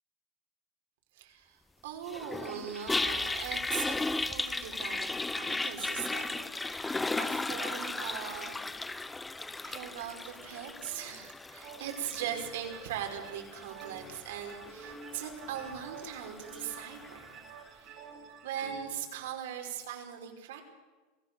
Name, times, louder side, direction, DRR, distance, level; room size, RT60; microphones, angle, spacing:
voice 1, 1.1-8.7 9.6-17.4 17.7-18.0 18.4-20.6, right 9 dB, 80° right, 3 dB, 5.2 m, -40 dB
Toilet flush, 2.1-17.3, left 3 dB, 5° left, 0.7 m, -36 dB
Alarm, 2.9-10.6, right 4 dB, 15° right, 5.8 m, -57 dB
sound 1, 11.6-18.8, right 5 dB, 45° right, 6.5 m, -49 dB
27.0 x 18.5 x 7.0 m, 1.3 s
supercardioid pair, 160°, 0 cm